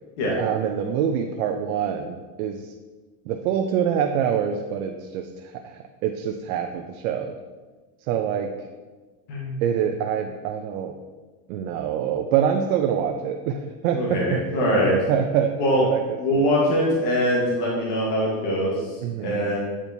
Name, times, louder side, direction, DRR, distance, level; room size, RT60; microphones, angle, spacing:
voice 1, 0.3-2.7 3.3-7.3 8.1-8.5 9.6-11.0 11.5-14.4 14.8-16.4 19.0-19.4, right 8 dB, 65° right, 4 dB, 0.6 m, -25 dB
voice 2, 9.3-9.6 13.9-15.0 15.6-15.8 16.2-19.0 19.2-19.6, equal, 50° left, -4 dB, 1.4 m, -22 dB
8.5 x 4.4 x 2.7 m, 1.3 s
supercardioid pair, 160°, 47 cm